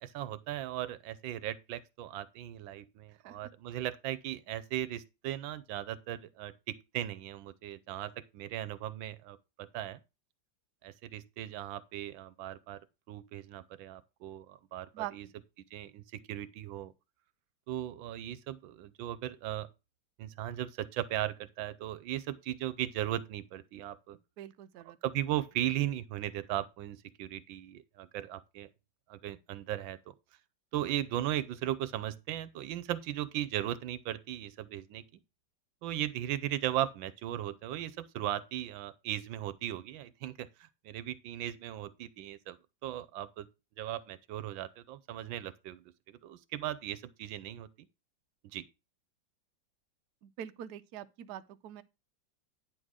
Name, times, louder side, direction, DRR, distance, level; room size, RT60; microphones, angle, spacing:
voice 1, 0.0-10.0 10.8-12.8 13.1-15.3 15.7-16.9 17.7-19.7 20.2-24.2 25.0-28.7 29.1-30.0 30.7-35.2 35.8-42.6 42.8-43.5 43.8-47.9 48.5-48.6, right 12 dB, 90° right, 1.4 m, -37 dB
voice 2, 24.4-25.0 50.2-51.8, right 11 dB, 70° right, 1.1 m, -43 dB
9.7 x 3.7 x 6.4 m
omnidirectional pair, 2.1 m